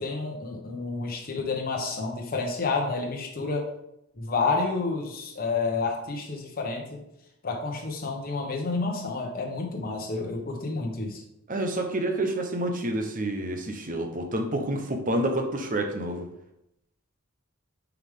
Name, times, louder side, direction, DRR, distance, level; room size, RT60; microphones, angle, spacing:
voice 1, 0.0-3.7 4.2-7.0 7.4-11.2, left 3 dB, 45° left, 0 dB, 1.0 m, -29 dB
voice 2, 11.5-16.3, right 1 dB, 40° right, 4 dB, 0.9 m, -28 dB
6.9 x 4.8 x 3.6 m, 0.83 s
head